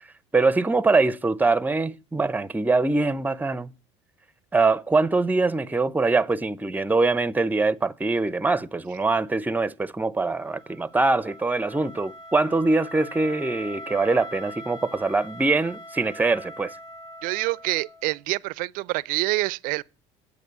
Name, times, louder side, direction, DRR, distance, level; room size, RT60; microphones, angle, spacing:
voice 1, 0.3-3.7 4.5-16.7, right 3 dB, 10° right, 0.7 m, -23 dB
Wind instrument woodwind instrument, 10.2-18.2, equal, 85° left, 1.8 m, -42 dB
voice 2, 17.2-19.8, right 21 dB, 65° right, 0.5 m, -26 dB
9.2 x 8.3 x 8.5 m
hypercardioid pair, 80°, 15 cm